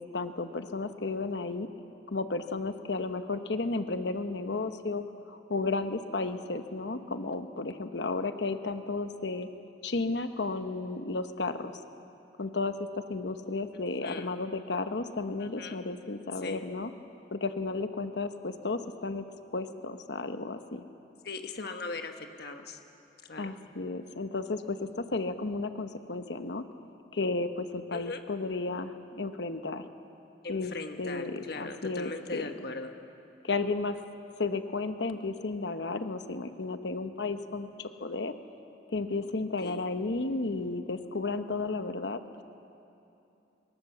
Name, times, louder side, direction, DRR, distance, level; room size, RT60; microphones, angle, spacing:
voice 1, 0.0-1.7 2.1-9.5 9.8-11.7 12.4-16.9 17.3-19.2 19.5-20.8 23.4-26.6 27.1-29.9 30.5-30.7 31.0-32.5 33.4-34.0 34.4-38.3 38.9-42.2, left 3 dB, 80° left, 9 dB, 1.0 m, -33 dB
voice 2, 14.0-14.3 15.4-15.8 16.4-16.7 21.2-22.8 23.2-23.5 27.9-28.2 30.4-32.9 39.6-39.9, left 3 dB, 65° left, 6 dB, 1.3 m, -39 dB
24.0 x 19.5 x 7.3 m, 2.8 s
head